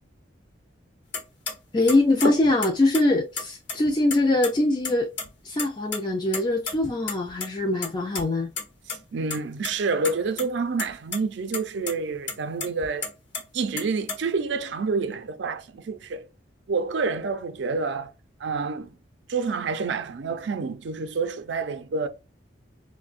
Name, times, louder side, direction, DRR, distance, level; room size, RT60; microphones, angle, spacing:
sound 1, 1.1-1.2 1.5-1.6 1.9-3.0 3.4-4.2 4.4-4.5 4.8-5.3 5.5-6.0 6.3-7.5 7.8-8.2 8.6-8.7 8.9-9.0 9.3-9.7 10.0-10.5 10.8-11.2 11.5-11.6 11.9-12.0 12.3-13.4 13.8-14.2, left 3 dB, 70° left, 0.9 m, -30 dB
voice 1, 1.7-5.1 5.4-8.5, left 2 dB, 25° left, 0.3 m, -23 dB
voice 2, 9.1-13.1 13.5-16.3 16.7-18.1 18.4-19.0 19.3-22.1, right 4 dB, 65° right, 0.4 m, -28 dB
5.0 x 2.1 x 2.4 m
head